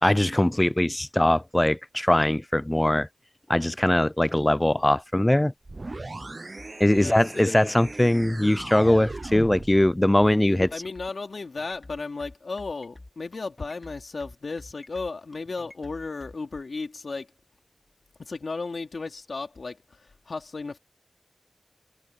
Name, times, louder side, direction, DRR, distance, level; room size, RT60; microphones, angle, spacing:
voice 1, 0.0-3.1 3.5-5.5 6.8-10.7, left 1 dB, 15° left, 0.4 m, -21 dB
sound 1, 5.6-9.8, right 2 dB, 40° right, 0.8 m, -38 dB
sound 2, 6.2-16.4, left 2 dB, 30° left, 3.9 m, -48 dB
voice 2, 6.9-7.6 10.5-17.3 18.2-19.8 20.3-20.8, left 3 dB, 70° left, 3.1 m, -35 dB
wide cardioid pair, 65°, 0 cm